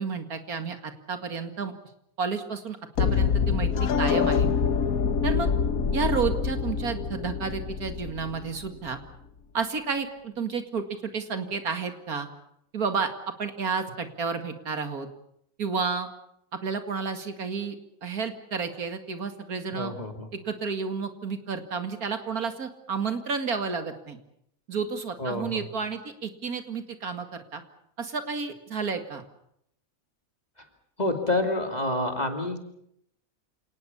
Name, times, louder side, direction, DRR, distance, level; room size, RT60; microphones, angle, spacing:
voice 1, 0.0-1.7 2.2-4.5 5.2-5.5 5.9-9.0 9.5-12.3 12.7-15.1 15.6-16.1 16.5-17.8 18.0-19.9 20.3-24.2 24.7-27.6 28.0-29.2, right 5 dB, 85° right, 8 dB, 2.6 m, -31 dB
sound 1, 3.0-8.9, left 6 dB, 75° left, 1.6 m, -25 dB
voice 2, 19.7-20.3 25.2-25.6 31.0-32.6, left 1 dB, 30° left, 5 dB, 2.6 m, -28 dB
28.0 x 18.5 x 7.1 m, 0.73 s
omnidirectional pair, 1.5 m